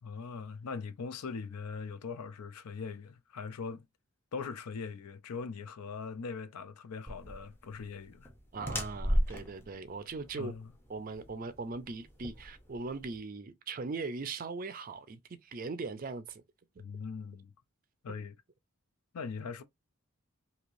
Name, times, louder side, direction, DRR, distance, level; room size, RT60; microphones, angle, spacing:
voice 1, 0.0-3.9 4.3-8.3 10.4-10.7 16.8-17.5 18.0-18.4 19.1-19.6, left 5 dB, 90° left, 0.5 m, -41 dB
sound 1, 7.1-13.2, equal, 10° left, 0.6 m, -36 dB
voice 2, 8.5-10.5 10.9-16.4 16.8-16.9, right 4 dB, 40° right, 0.4 m, -40 dB
3.1 x 2.8 x 2.5 m
head